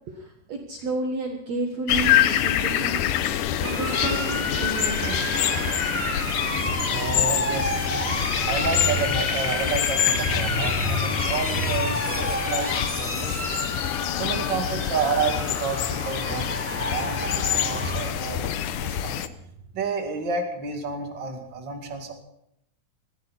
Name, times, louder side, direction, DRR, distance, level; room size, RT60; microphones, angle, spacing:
voice 1, 0.1-3.0 3.6-5.3, right 3 dB, 55° right, 2 dB, 2.5 m, -31 dB
sound 1, 1.9-19.3, left 11 dB, 75° left, 2.2 m, -26 dB
voice 2, 3.2-3.8 6.5-13.6 14.1-19.2 19.7-22.1, right 4 dB, 35° right, 3 dB, 2.5 m, -30 dB
Motor vehicle (road) / Siren, 3.6-18.1, equal, 5° right, 1.8 m, -31 dB
21.5 x 15.0 x 4.2 m, 0.75 s
omnidirectional pair, 4.1 m